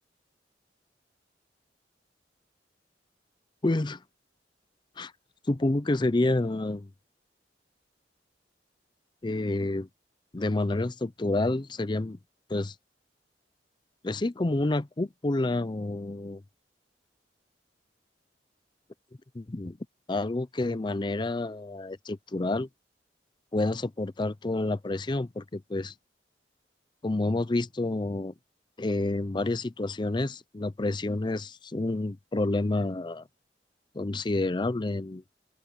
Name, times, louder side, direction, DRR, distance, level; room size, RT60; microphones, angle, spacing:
voice 1, 3.6-4.0 5.0-5.1 5.5-6.9 9.2-9.9 10.3-12.2 12.5-12.7 14.0-16.4 19.3-19.8 20.1-22.7 23.5-25.9 27.0-28.3 28.8-33.3 33.9-35.2, left 2 dB, 25° left, 0.5 m, -29 dB
open air
head